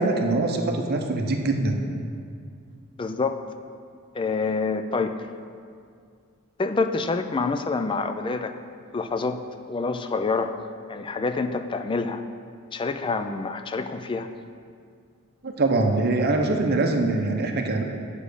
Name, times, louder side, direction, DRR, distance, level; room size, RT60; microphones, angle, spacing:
voice 1, 0.0-1.8 15.4-17.8, right 2 dB, 45° right, 3 dB, 0.7 m, -23 dB
voice 2, 3.0-3.4 4.1-5.2 6.6-8.5 8.9-10.5 10.9-12.2 12.7-14.3, left 4 dB, 25° left, 9 dB, 0.3 m, -27 dB
7.0 x 5.0 x 6.6 m, 2.2 s
head